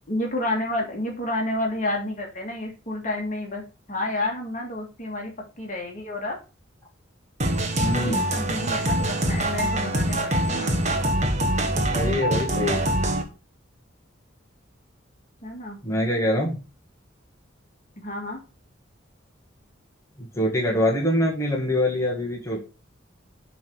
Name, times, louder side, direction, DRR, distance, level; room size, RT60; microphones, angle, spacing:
voice 1, 0.1-3.6 3.9-6.4 7.9-10.8 15.4-15.8 18.0-18.4, left 1 dB, 40° left, 1 dB, 1.8 m, -30 dB
sound 1, 7.4-13.2, right 1 dB, 35° right, 1.1 m, -24 dB
voice 2, 7.8-8.3 11.9-12.9 15.8-16.6 20.2-22.6, left 1 dB, 15° left, -3 dB, 1.7 m, -24 dB
7.1 x 3.6 x 6.1 m, 0.32 s
head